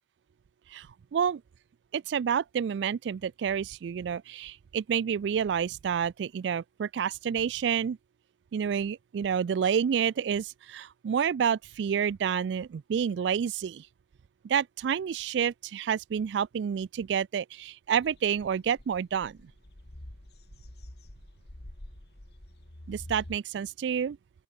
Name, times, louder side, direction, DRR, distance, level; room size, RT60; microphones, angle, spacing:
voice 1, 0.7-1.4 1.9-8.0 8.5-13.9 14.4-19.4 22.9-24.2, right 7 dB, 75° right, 0.3 m, -29 dB
sound 1, 18.0-23.4, left 1 dB, 60° left, 2.2 m, -47 dB
open air
head